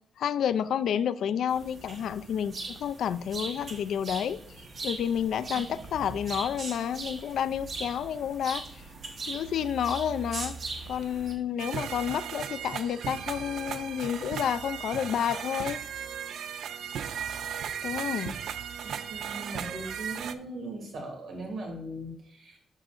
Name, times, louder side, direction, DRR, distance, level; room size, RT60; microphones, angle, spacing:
voice 1, 0.2-4.4 4.8-8.6 9.3-10.5 10.9-15.8 17.8-18.4, left 9 dB, 75° left, 0.3 m, -30 dB
sound 1, 1.5-11.3, right 3 dB, 45° right, 1.2 m, -40 dB
sound 2, 11.6-20.3, right 8 dB, 75° right, 0.4 m, -36 dB
voice 2, 18.8-22.6, right 1 dB, 60° right, 2.7 m, -39 dB
12.0 x 4.8 x 2.5 m
wide cardioid pair, 180°, 0 cm